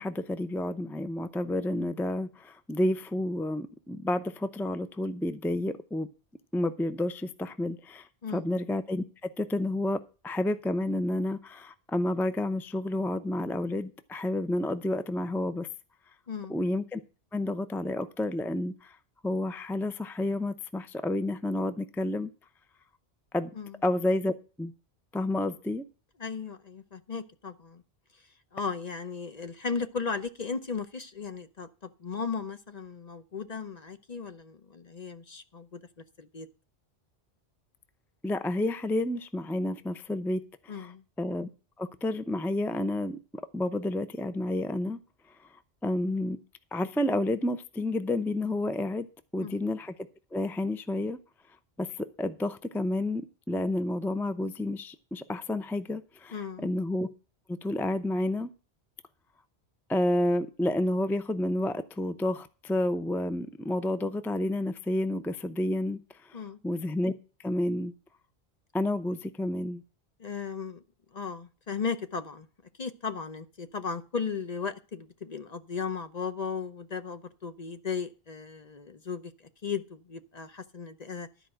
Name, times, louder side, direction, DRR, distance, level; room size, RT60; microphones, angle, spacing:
voice 1, 0.0-6.1 6.5-15.7 16.5-17.0 17.3-19.0 19.2-22.3 23.3-23.5 23.8-24.7 25.1-25.9 38.2-40.9 41.2-41.5 41.8-43.2 43.5-45.0 45.8-46.4 46.7-49.1 49.3-49.9 50.3-51.2 51.8-57.1 57.5-58.5 59.9-67.1 67.4-67.9 68.7-69.8, left 1 dB, 5° left, 0.5 m, -30 dB
voice 2, 16.3-16.6 23.6-23.8 26.2-27.8 28.1-28.2 28.5-35.8 36.2-36.5 40.7-41.0 49.4-49.6 56.3-56.7 66.3-66.6 70.2-70.8 71.1-72.5 72.8-81.3, left 5 dB, 45° left, 0.8 m, -36 dB
13.0 x 4.8 x 7.7 m
omnidirectional pair, 1.1 m